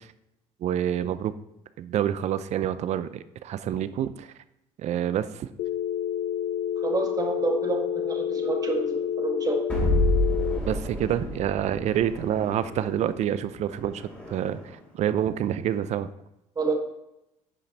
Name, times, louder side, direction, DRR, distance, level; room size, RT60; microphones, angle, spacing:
voice 1, 0.6-1.3 1.8-4.3 4.8-5.5 10.7-16.1, right 10 dB, 60° right, 14 dB, 0.5 m, -27 dB
Telephone, 5.6-10.6, left 10 dB, 70° left, 0.4 m, -29 dB
voice 2, 6.8-9.7 16.6-16.7, right 3 dB, 30° right, 2 dB, 1.7 m, -28 dB
sound 1, 9.7-14.8, left 1 dB, 10° left, 3.1 m, -29 dB
8.5 x 5.2 x 4.1 m, 0.87 s
cardioid pair, 90°, 13 cm